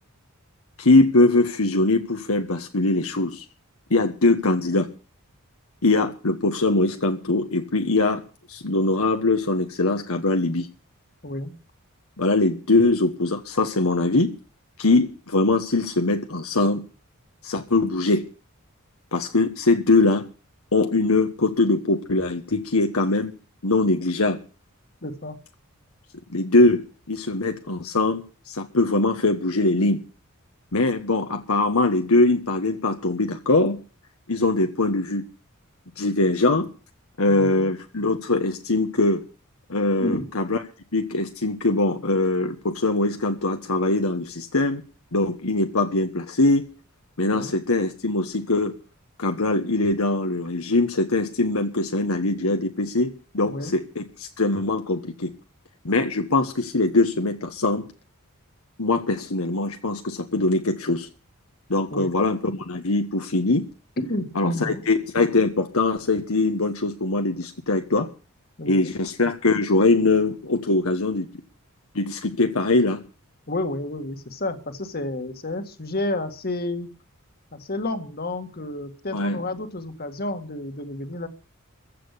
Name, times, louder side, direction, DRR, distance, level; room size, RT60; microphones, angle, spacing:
voice 1, 0.8-3.4 3.9-4.9 5.8-8.2 8.5-10.7 12.2-14.3 14.8-16.8 17.4-18.2 19.1-20.2 20.7-23.3 23.6-24.4 26.3-28.2 28.5-30.0 30.7-33.8 34.3-35.2 36.0-36.7 37.2-39.2 39.7-40.6 40.9-44.8 45.1-46.6 47.2-48.7 49.2-55.3 55.8-57.8 58.8-61.1 61.7-63.7 64.3-68.1 68.7-71.3 71.9-73.0 79.1-79.4, left 2 dB, 70° left, 5 dB, 1.4 m, -22 dB
voice 2, 25.0-25.4 37.3-37.7 40.0-40.3 47.3-47.5 53.4-53.7 61.9-62.2 64.0-64.8 68.6-68.9 73.5-76.9 77.5-81.3, left 1 dB, 45° left, 8 dB, 1.9 m, -30 dB
15.5 x 7.6 x 8.4 m, 0.37 s
head